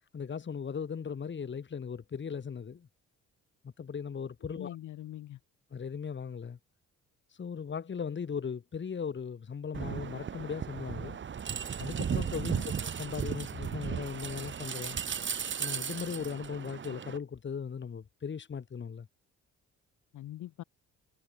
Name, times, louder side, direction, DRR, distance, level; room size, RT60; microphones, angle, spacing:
voice 1, 0.1-2.9 3.6-4.8 5.7-6.6 7.4-11.2 11.8-15.0 15.6-19.1, left 6 dB, 40° left, 2.3 m, -38 dB
voice 2, 4.5-5.4 12.4-12.7 20.1-20.6, left 13 dB, 80° left, 3.0 m, -42 dB
sound 1, 9.7-17.2, right 7 dB, 40° right, 1.3 m, -36 dB
cardioid pair, 90°, 30 cm